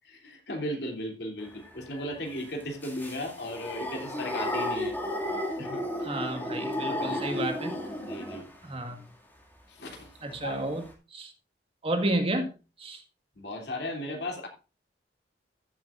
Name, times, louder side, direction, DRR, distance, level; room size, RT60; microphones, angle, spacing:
voice 1, 0.0-4.9 5.6-5.8 6.6-7.4 8.0-8.5 9.7-10.6 13.3-14.5, left 1 dB, 65° left, 2 dB, 3.0 m, -36 dB
sound 1, 1.4-8.7 10.3-10.4 10.6-10.9, left 1 dB, 10° left, 2.3 m, -34 dB
voice 2, 6.0-7.7 8.6-9.0 10.2-10.8 11.1-11.3 11.8-12.5 12.8-13.0, right 1 dB, 35° right, 5 dB, 1.7 m, -31 dB
14.5 x 8.1 x 2.5 m, 0.31 s
head